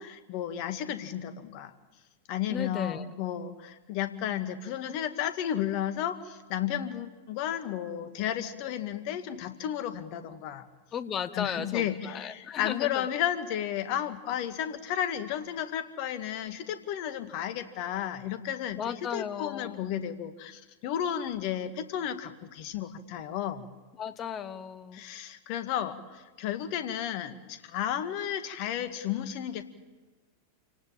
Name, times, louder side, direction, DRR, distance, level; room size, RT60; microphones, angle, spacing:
voice 1, 0.0-1.7 2.3-10.6 11.3-23.7 24.9-29.6, left 10 dB, 45° left, 10 dB, 1.9 m, -33 dB
voice 2, 2.5-3.1 10.9-13.1 18.7-20.0 24.0-25.0, left 8 dB, 25° left, 13 dB, 1.5 m, -35 dB
28.5 x 18.0 x 8.9 m, 1.2 s
figure-of-eight pair, 90°, 0 cm